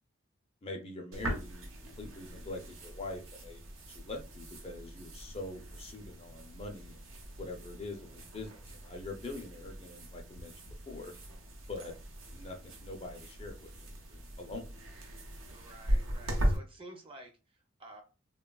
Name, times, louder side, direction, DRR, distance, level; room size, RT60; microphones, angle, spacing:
voice 1, 0.6-1.7 2.0-3.6 3.9-7.0 7.4-10.5 10.9-11.1 11.7-11.9 12.3-14.7, left 2 dB, 30° left, 3 dB, 0.4 m, -44 dB
sound 1, 1.1-16.6, equal, 85° right, 0.7 m, -39 dB
voice 2, 15.5-18.0, right 1 dB, 25° right, 3 dB, 0.5 m, -52 dB
3.1 x 2.2 x 2.2 m, 0.31 s
head